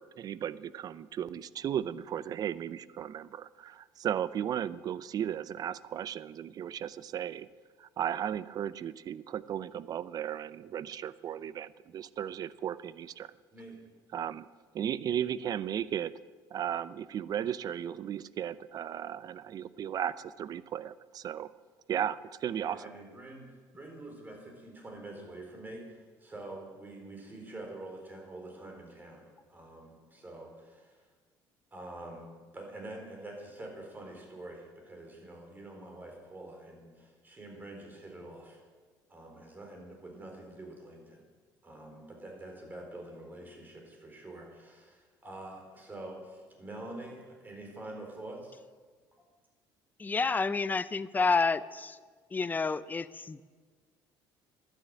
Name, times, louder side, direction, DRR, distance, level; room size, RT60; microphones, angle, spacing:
voice 1, 0.0-7.5 7.8-13.3 14.1-14.5 14.7-16.1 16.5-21.5 21.9-22.8, right 9 dB, 45° right, 17 dB, 0.6 m, -35 dB
voice 2, 13.5-13.8 22.7-31.0 31.7-38.6 39.1-41.2 41.6-48.6 49.2-49.3, right 2 dB, 20° right, 1 dB, 4.4 m, -46 dB
voice 3, 50.0-52.0 52.3-53.5, left 4 dB, 20° left, 16 dB, 0.6 m, -29 dB
12.0 x 10.0 x 9.0 m, 1.5 s
cardioid pair, 105°, 9 cm